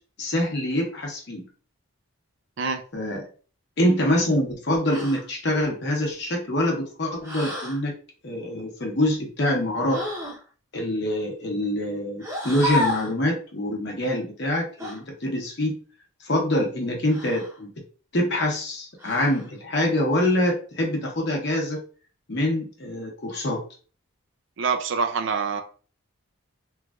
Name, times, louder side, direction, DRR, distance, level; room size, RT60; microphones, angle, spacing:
voice 1, 0.2-1.5 2.9-3.3 3.8-7.9 8.2-10.0 10.7-15.8 16.2-17.7 18.1-21.8 22.3-23.6, left 1 dB, 50° left, 0.9 m, -25 dB
sound 1, 4.9-5.3 7.2-7.8 9.9-10.4 12.2-13.1 14.8-15.0 17.1-17.6 19.0-19.5, left 1 dB, 15° right, 0.7 m, -31 dB
voice 2, 24.6-25.6, right 5 dB, 60° right, 0.4 m, -25 dB
3.1 x 2.4 x 2.3 m
head